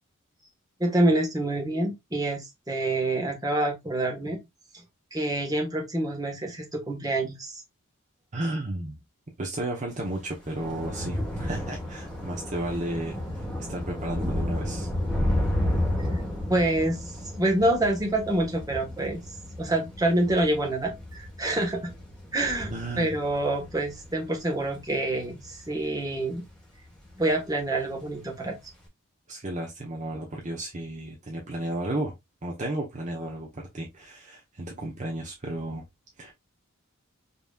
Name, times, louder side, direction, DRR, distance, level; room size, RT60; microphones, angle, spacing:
voice 1, 0.8-4.4 5.1-7.6 16.0-16.2 16.5-19.2 19.6-21.9 22.3-26.4 27.2-28.5, right 1 dB, 15° right, 1.2 m, -27 dB
voice 2, 8.3-9.0 9.4-14.9 22.7-23.2 29.3-32.1 32.4-35.8 36.2-36.3, right 1 dB, 35° right, 0.9 m, -33 dB
Thunder / Rain, 10.0-26.6 26.9-27.4 27.6-27.8, left 1 dB, 5° left, 1.3 m, -32 dB
5.3 x 3.0 x 2.3 m
head